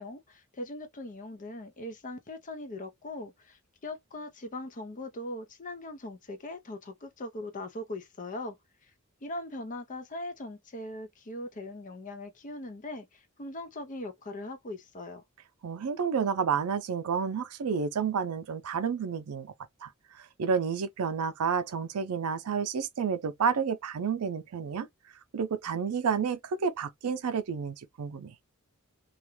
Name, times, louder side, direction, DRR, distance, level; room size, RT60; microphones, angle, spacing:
voice 1, 0.0-8.6 9.2-15.2, left 1 dB, 35° left, 0.6 m, -40 dB
voice 2, 15.6-19.5 19.8-19.9 20.4-24.9 25.3-28.3, right 6 dB, 90° right, 0.5 m, -30 dB
2.4 x 2.2 x 3.0 m
head